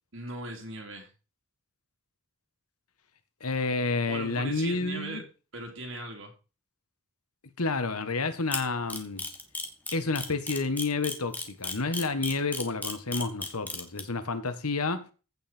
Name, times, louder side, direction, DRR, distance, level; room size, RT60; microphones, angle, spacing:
voice 1, 0.1-1.1 4.1-5.2 5.5-6.3, right 2 dB, 60° right, 3.2 m, -39 dB
voice 2, 3.4-5.2 7.6-9.2 9.9-15.1, left 3 dB, 90° left, 1.5 m, -30 dB
Camera, 8.5-14.0, left 2 dB, 5° left, 1.4 m, -33 dB
15.5 x 5.6 x 4.4 m
head